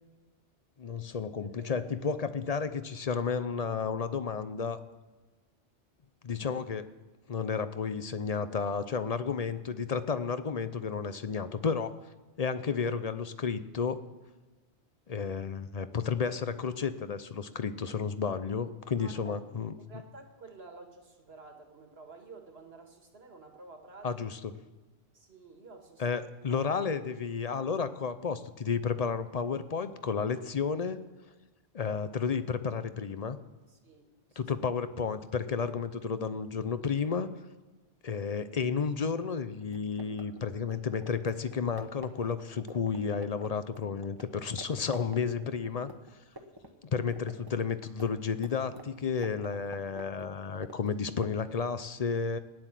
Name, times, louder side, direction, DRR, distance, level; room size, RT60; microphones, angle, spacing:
voice 1, 0.8-4.8 6.2-6.9 7.3-11.9 12.4-14.0 15.1-19.7 24.0-24.5 26.0-31.0 31.7-33.4 34.4-37.3 38.0-45.9 46.9-52.4, left 5 dB, 45° left, 12 dB, 0.6 m, -32 dB
voice 2, 1.3-1.7 19.0-19.3 19.9-24.1 25.1-26.0 26.5-26.7 33.7-34.5 46.7-46.9, right 3 dB, 65° right, 3 dB, 2.2 m, -51 dB
sound 1, 39.6-44.3 44.6-44.7 44.9-46.7 46.9-51.7, right 1 dB, 20° right, 1.2 m, -49 dB
15.5 x 10.0 x 7.5 m, 1.2 s
omnidirectional pair, 1.1 m